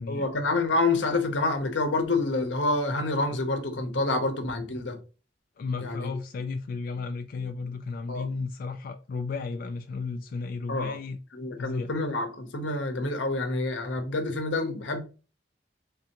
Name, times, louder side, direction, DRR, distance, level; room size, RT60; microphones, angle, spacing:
voice 1, 0.1-5.0 5.8-6.1 8.1-8.3 10.7-11.0 11.3-15.0, left 2 dB, 90° left, 0.8 m, -27 dB
voice 2, 5.6-11.2 11.6-11.9, left 4 dB, 55° left, 0.3 m, -34 dB
3.5 x 3.4 x 2.9 m
head